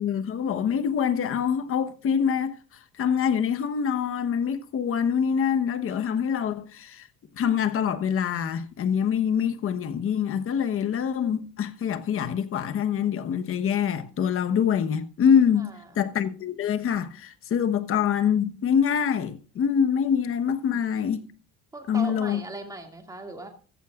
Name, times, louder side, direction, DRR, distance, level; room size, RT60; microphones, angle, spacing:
voice 1, 0.0-2.6 3.0-7.1 7.4-15.7 15.9-21.2 21.9-22.4, left 7 dB, 45° left, 1.2 m, -25 dB
voice 2, 15.6-16.0 20.2-20.3 20.6-20.8 21.7-23.5, right 2 dB, 10° right, 2.3 m, -39 dB
14.5 x 14.5 x 2.5 m
cardioid pair, 120°, 31 cm